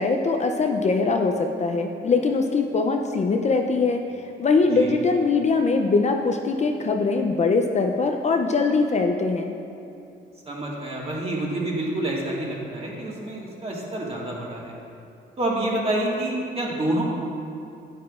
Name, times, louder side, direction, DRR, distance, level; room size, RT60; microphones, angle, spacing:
voice 1, 0.0-4.0 4.4-9.5, left 4 dB, 35° left, 3 dB, 0.5 m, -22 dB
voice 2, 10.5-14.7 15.4-17.0, right 1 dB, 30° right, -4 dB, 1.8 m, -28 dB
9.3 x 9.1 x 2.4 m, 2.6 s
cardioid pair, 90°, 20 cm